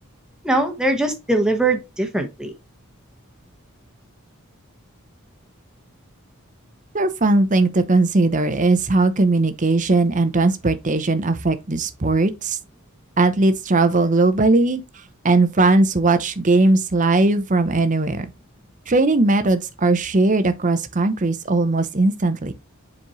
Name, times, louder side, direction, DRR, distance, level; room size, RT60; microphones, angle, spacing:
voice 1, 0.4-2.5, right 2 dB, 5° right, 1.2 m, -21 dB
voice 2, 6.9-12.6 13.2-14.8 15.2-18.3 18.9-22.5, right 2 dB, 35° right, 0.8 m, -18 dB
7.3 x 4.3 x 3.1 m
head